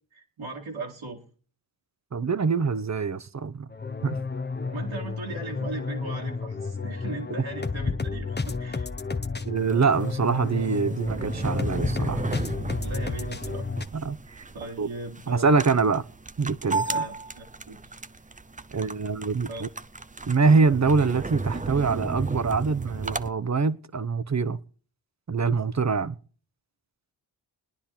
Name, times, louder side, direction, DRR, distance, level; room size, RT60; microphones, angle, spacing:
voice 1, 0.1-1.2 4.7-8.9 12.8-13.7 14.5-15.9 16.9-17.8 19.4-19.6, right 2 dB, 75° right, 3.0 m, -38 dB
voice 2, 2.1-3.7 4.0-4.1 9.5-12.2 13.9-14.4 14.8-14.9 15.3-16.0 16.4-17.0 18.7-19.7 20.3-24.6 25.3-26.2, right 5 dB, 35° right, 1.0 m, -24 dB
sound 1, 3.7-13.9, left 4 dB, 20° left, 1.0 m, -31 dB
sound 2, 9.6-23.3, right 3 dB, 15° right, 0.7 m, -34 dB
24.5 x 10.0 x 4.3 m
cardioid pair, 50°, 47 cm